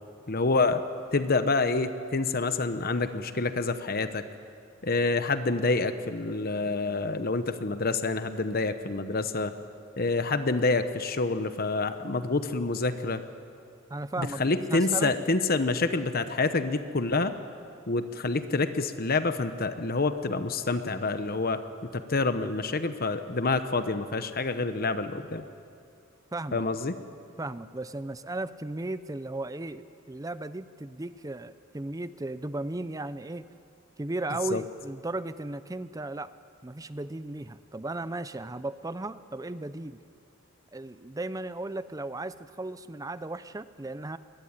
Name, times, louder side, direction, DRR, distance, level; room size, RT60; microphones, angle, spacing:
voice 1, 0.3-0.8 1.1-4.2 4.8-9.5 10.0-13.2 14.2-17.3 17.9-21.6 21.9-25.4 26.5-26.9 34.5-34.6, left 3 dB, 45° left, 10 dB, 1.0 m, -27 dB
voice 2, 13.9-15.1 26.3-26.6 27.4-33.4 34.0-36.3 36.6-40.0 40.7-44.2, right 2 dB, 15° right, 14 dB, 0.5 m, -35 dB
22.5 x 20.5 x 9.7 m, 2.5 s
head